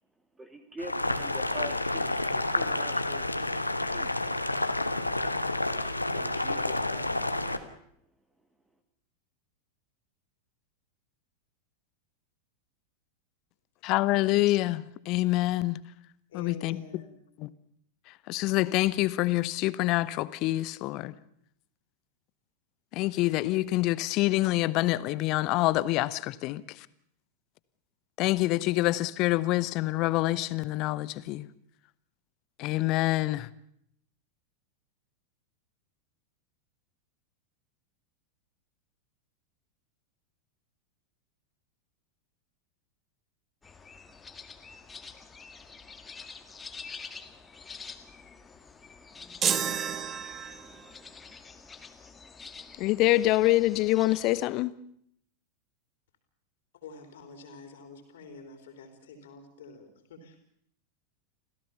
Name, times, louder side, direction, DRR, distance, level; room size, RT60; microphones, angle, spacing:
voice 1, 0.4-3.3 3.8-4.4 6.1-7.6, right 1 dB, 10° right, 1.8 m, -45 dB
Boiling, 0.8-7.6, left 2 dB, 85° left, 1.4 m, -29 dB
voice 2, 13.8-15.8 16.3-16.8 17.4-17.5 18.3-21.1 23.0-26.6 28.2-31.5 32.6-33.5 52.8-54.7, left 17 dB, 40° left, 0.9 m, -26 dB
voice 3, 16.3-17.2 56.7-60.4, left 3 dB, 60° left, 3.6 m, -48 dB
sound 1, 43.6-54.5, left 5 dB, 15° left, 1.9 m, -47 dB
sound 2, 49.4-50.9, right 8 dB, 25° right, 1.1 m, -30 dB
26.5 x 16.0 x 7.0 m
figure-of-eight pair, 90°, 0 cm